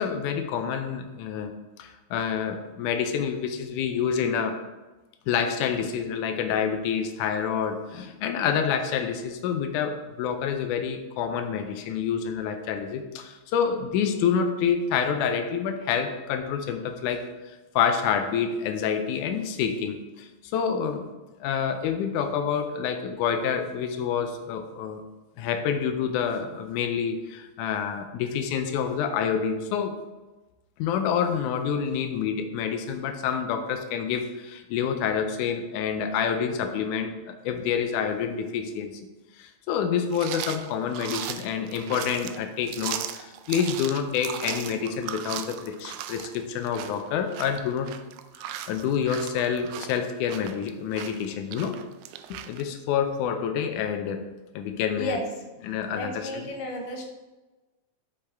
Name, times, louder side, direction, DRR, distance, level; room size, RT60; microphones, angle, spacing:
voice 1, 0.0-1.5 1.8-4.6 5.3-21.0 21.4-25.0 25.4-29.9 30.8-38.9 39.4-47.9 48.4-51.8 52.3-54.2 54.6-55.2 55.6-56.4, left 7 dB, 85° left, 6 dB, 2.2 m, -28 dB
sound 1, 40.1-52.6, right 11 dB, 80° right, 1.9 m, -37 dB
voice 2, 55.9-57.0, left 1 dB, 70° left, 2 dB, 2.2 m, -32 dB
8.6 x 6.4 x 3.5 m, 1.2 s
omnidirectional pair, 3.5 m